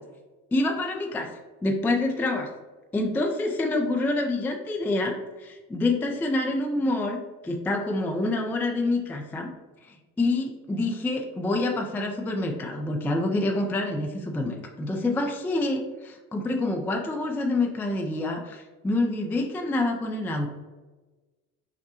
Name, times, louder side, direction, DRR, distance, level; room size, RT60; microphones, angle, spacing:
voice 1, 0.5-1.3 1.6-2.5 2.9-9.5 10.2-20.5, left 2 dB, 5° left, 3 dB, 0.3 m, -27 dB
6.0 x 2.2 x 2.8 m, 1.2 s
hypercardioid pair, 55°, 44 cm